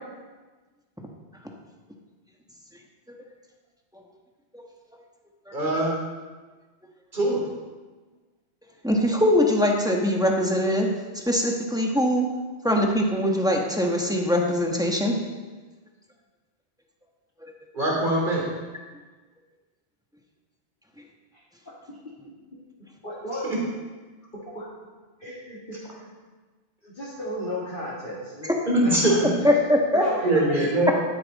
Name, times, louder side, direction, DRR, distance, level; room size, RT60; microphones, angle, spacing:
voice 1, 5.5-5.9 7.1-7.4 17.7-18.4 28.7-29.3 30.2-30.9, right 1 dB, 45° right, -3 dB, 3.2 m, -22 dB
voice 2, 8.8-10.9 11.3-12.3 12.6-15.2 29.4-30.0, left 1 dB, 5° right, 0 dB, 1.3 m, -22 dB
voice 3, 23.0-23.4 24.5-24.7 25.2-26.1 26.8-30.4 30.9-31.0, left 1 dB, 50° left, -9 dB, 2.5 m, -35 dB
12.0 x 10.0 x 4.2 m, 1.3 s
omnidirectional pair, 1.1 m